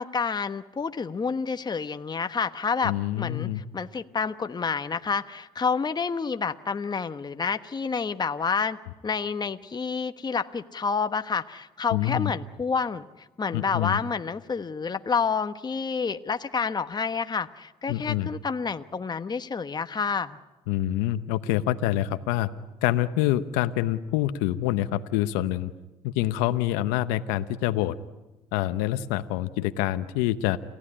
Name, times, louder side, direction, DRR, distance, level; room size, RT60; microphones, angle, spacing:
voice 1, 0.0-8.8 9.0-20.4, left 5 dB, 30° left, 9 dB, 1.1 m, -29 dB
voice 2, 2.8-3.6 11.9-12.3 13.5-14.0 17.9-18.3 20.7-22.5 22.8-25.7 26.0-27.9 28.5-30.6, left 14 dB, 90° left, 11 dB, 0.9 m, -26 dB
29.5 x 16.0 x 9.9 m, 1.1 s
supercardioid pair, 65°, 14 cm